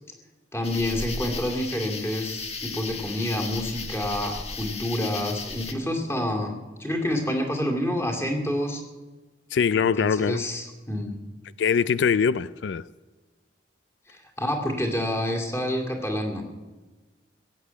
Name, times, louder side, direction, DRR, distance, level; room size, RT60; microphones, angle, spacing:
voice 1, 0.5-8.8 9.8-11.2 14.1-16.4, left 1 dB, 15° left, 2.3 m, -28 dB
sound 1, 0.6-5.7, left 4 dB, 35° left, 1.5 m, -35 dB
voice 2, 9.5-10.4 11.6-12.8, left 6 dB, 85° left, 0.4 m, -22 dB
16.5 x 8.3 x 8.5 m
head